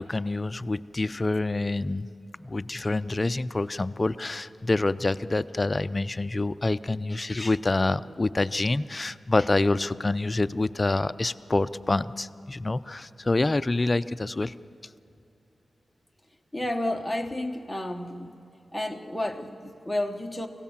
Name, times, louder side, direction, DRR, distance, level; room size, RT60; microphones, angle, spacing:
voice 1, 0.0-14.5, left 2 dB, 25° left, 13 dB, 0.4 m, -27 dB
voice 2, 16.5-18.3 18.7-20.5, left 1 dB, ahead, 3 dB, 1.1 m, -31 dB
25.0 x 16.5 x 7.2 m, 2.8 s
wide cardioid pair, 155°, 0 cm